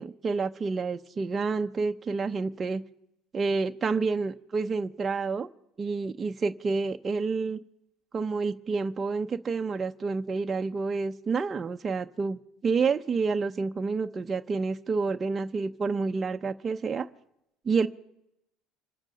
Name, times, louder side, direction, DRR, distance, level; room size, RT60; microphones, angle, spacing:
voice 1, 0.0-2.8 3.3-5.5 5.8-7.6 8.1-17.1 17.6-17.9, right 4 dB, 30° right, 5 dB, 0.7 m, -29 dB
26.0 x 8.9 x 5.2 m, 0.82 s
supercardioid pair, 80°, 0 cm